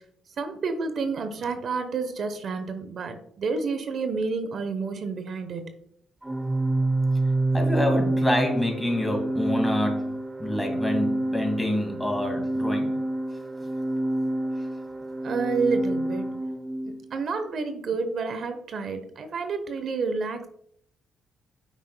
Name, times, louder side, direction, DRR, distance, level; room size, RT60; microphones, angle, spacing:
voice 1, 0.4-5.7 15.2-16.3 16.8-20.5, right 4 dB, 60° right, 8 dB, 0.9 m, -29 dB
Organ, 6.2-17.0, right 1 dB, 15° right, 0.5 m, -27 dB
voice 2, 7.5-10.1 10.4-12.9, left 1 dB, 5° left, 2 dB, 2.1 m, -27 dB
9.0 x 5.8 x 2.2 m, 0.68 s
cardioid pair, 90°, 0 cm